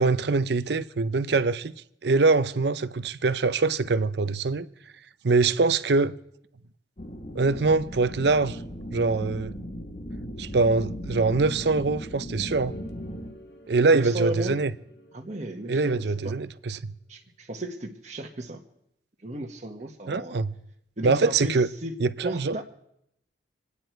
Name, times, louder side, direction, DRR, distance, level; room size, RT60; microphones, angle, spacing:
voice 1, 0.0-1.7 2.0-4.7 5.2-6.1 7.3-8.6 8.9-9.5 10.4-12.7 13.7-14.7 15.7-16.9 20.1-20.5 21.0-21.7 22.0-22.6, right 3 dB, 60° right, 0.6 m, -23 dB
sound 1, 7.0-13.3, equal, 35° left, 1.3 m, -37 dB
sound 2, 11.5-16.6, equal, 60° left, 1.6 m, -50 dB
voice 2, 13.9-14.6 15.1-16.3 17.1-18.6 19.2-20.4 21.0-22.0 22.2-22.6, right 1 dB, 40° right, 1.2 m, -35 dB
27.5 x 9.7 x 4.5 m
head